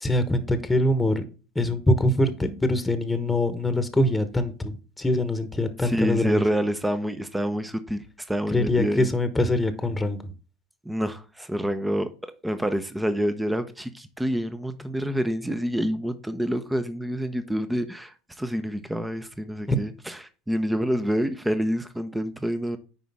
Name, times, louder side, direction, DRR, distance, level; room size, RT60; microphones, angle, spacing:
voice 1, 0.0-1.2 1.5-6.4 8.5-10.3 19.7-19.8, left 1 dB, 10° left, 1.3 m, -23 dB
voice 2, 5.8-9.1 10.8-12.1 12.4-20.2 20.5-22.8, equal, 5° right, 0.9 m, -27 dB
9.3 x 5.0 x 3.6 m
hypercardioid pair, 80°, 0 cm